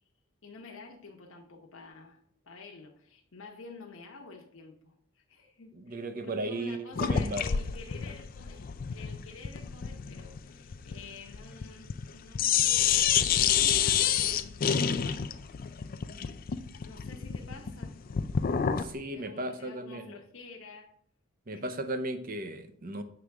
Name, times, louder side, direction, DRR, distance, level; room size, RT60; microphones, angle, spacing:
voice 1, 0.4-2.2 2.4-13.1 13.5-14.7 16.8-18.0 19.1-20.9 21.5-21.6, left 4 dB, 65° left, 0.9 m, -49 dB
voice 2, 5.7-7.5 18.8-20.1 21.5-23.0, right 1 dB, 40° right, 0.7 m, -36 dB
sound 1, 7.0-12.1 12.3-18.9, left 8 dB, 40° left, 0.4 m, -28 dB
7.9 x 6.2 x 3.5 m
head